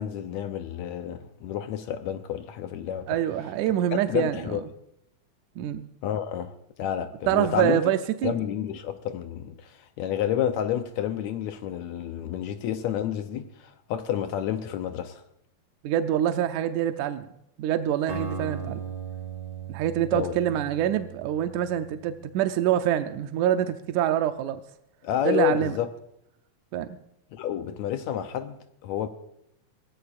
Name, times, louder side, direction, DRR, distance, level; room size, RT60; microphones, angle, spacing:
voice 1, 0.0-3.2 4.1-4.7 6.0-6.5 6.8-7.8 8.2-15.2 20.1-20.4 25.0-25.9 27.3-28.6 28.8-29.1, left 10 dB, 75° left, 1.9 m, -30 dB
voice 2, 3.1-4.6 5.6-5.8 7.3-8.3 15.8-17.3 17.6-18.8 19.7-24.6 25.2-25.8 26.7-27.0, right 11 dB, 80° right, 2.1 m, -25 dB
Acoustic guitar, 18.1-22.2, right 6 dB, 55° right, 4.0 m, -37 dB
24.5 x 17.5 x 2.5 m
omnidirectional pair, 3.4 m